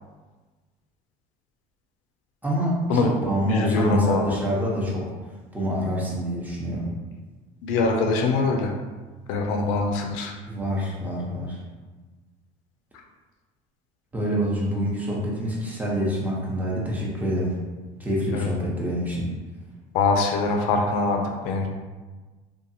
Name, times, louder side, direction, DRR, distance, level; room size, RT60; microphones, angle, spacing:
voice 1, 2.4-5.0 5.5-6.9 10.5-11.6 14.1-17.6 18.0-19.3, equal, 10° right, -5 dB, 0.8 m, -26 dB
voice 2, 3.5-4.4 7.6-8.7 9.3-10.3 18.3-18.5 19.9-21.7, left 3 dB, 80° left, 2 dB, 0.4 m, -23 dB
2.5 x 2.4 x 2.7 m, 1.3 s
supercardioid pair, 85°, 17 cm